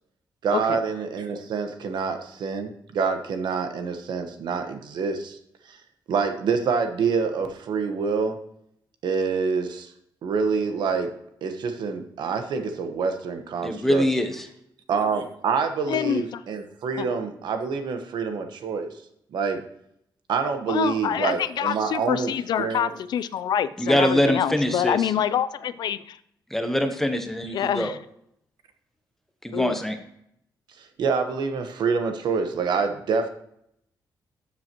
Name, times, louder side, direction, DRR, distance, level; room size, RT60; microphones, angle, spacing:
voice 1, 0.4-5.4 5.6-5.8 6.1-8.4 9.0-9.9 10.2-11.1 11.4-14.0 14.9-18.9 19.3-19.6 20.3-22.3 22.6-22.9 30.8-33.3, right 5 dB, 75° right, 6 dB, 1.1 m, -26 dB
voice 2, 13.6-14.5 23.8-25.1 26.5-27.9 29.4-30.0, equal, 5° left, 6 dB, 0.9 m, -23 dB
voice 3, 15.9-16.2 17.0-17.1 20.7-26.2 27.5-28.0 29.5-29.7, left 9 dB, 70° left, 16 dB, 0.4 m, -26 dB
12.5 x 7.5 x 3.0 m, 0.74 s
wide cardioid pair, 175°, 8 cm